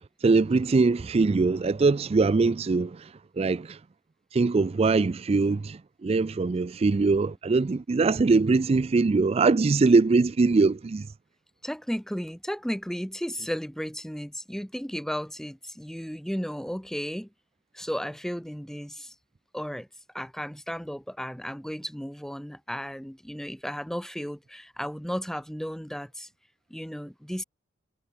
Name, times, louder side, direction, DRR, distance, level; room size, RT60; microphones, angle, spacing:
voice 1, 0.2-3.8 4.3-11.1, right 3 dB, 30° right, 0.3 m, -22 dB
voice 2, 11.6-17.3 17.7-19.1 19.5-19.9 20.1-26.3 26.7-27.4, equal, ahead, 1.1 m, -34 dB
head